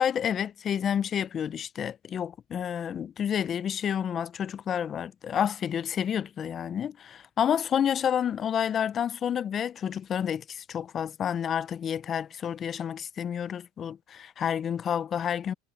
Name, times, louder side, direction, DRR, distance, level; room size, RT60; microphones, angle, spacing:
voice 1, 0.0-15.5, left 8 dB, 30° left, 0.4 m, -29 dB
supercardioid pair, 130°, 0 cm